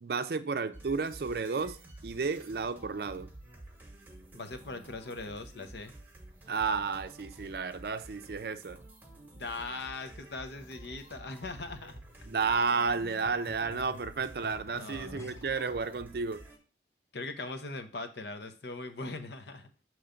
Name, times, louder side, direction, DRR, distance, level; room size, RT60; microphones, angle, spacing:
voice 1, 0.0-1.8 2.0-3.3 6.5-8.8 12.3-16.4, right 4 dB, 60° right, 0.4 m, -32 dB
sound 1, 0.7-16.6, right 1 dB, 10° right, 0.9 m, -51 dB
voice 2, 4.3-5.9 9.3-12.0 14.7-15.3 17.1-19.7, left 3 dB, 75° left, 0.8 m, -40 dB
sound 2, 11.9-15.7 16.5-16.6, left 3 dB, 15° left, 0.5 m, -52 dB
6.9 x 3.1 x 5.1 m
head